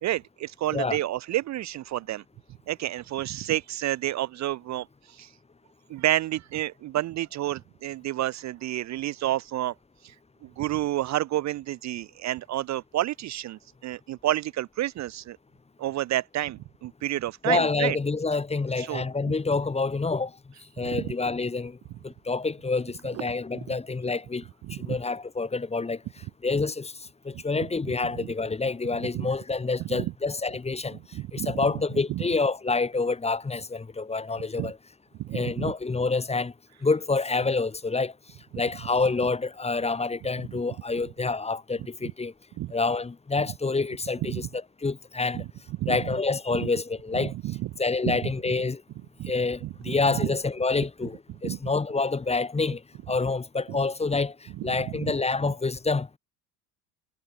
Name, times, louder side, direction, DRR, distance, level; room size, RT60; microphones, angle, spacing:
voice 1, 0.0-2.2 2.7-5.3 5.9-9.7 10.0-10.1 10.4-15.4 15.8-18.0 18.8-19.0 20.9-21.1 23.1-23.2 24.7-25.0 27.3-27.4 28.1-28.3 29.1-29.3 30.0-30.1 31.1-31.6 32.1-32.2 34.6-34.7 35.2-35.7 42.6-42.7 44.3-44.4 45.3-45.5 45.8-46.0 46.6-46.7 47.2-47.7 48.1-48.2 49.2-49.3 49.6-50.3 51.4-51.6 53.7-53.8 54.6-55.1, right 14 dB, 40° right, 0.7 m, -30 dB
voice 2, 17.4-20.3 20.8-21.8 22.0-24.4 24.7-26.0 26.4-26.9 27.2-31.0 31.3-34.8 35.3-36.5 36.8-38.1 38.5-42.3 42.7-45.4 45.9-47.3 47.8-48.8 49.3-52.8 53.1-56.2, left 3 dB, 15° left, 1.4 m, -27 dB
hypercardioid pair, 70°, 44 cm